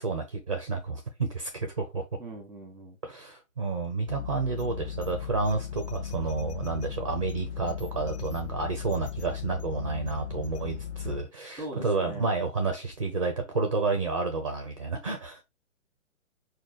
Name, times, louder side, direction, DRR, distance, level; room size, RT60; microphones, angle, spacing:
voice 1, 0.0-2.1 3.0-15.4, right 4 dB, 25° right, 0.4 m, -30 dB
voice 2, 2.2-3.0 11.6-12.3, right 1 dB, 5° right, 1.1 m, -41 dB
sound 1, 4.1-11.2, left 9 dB, 55° left, 0.8 m, -37 dB
4.7 x 2.2 x 4.0 m
figure-of-eight pair, 135°, 41 cm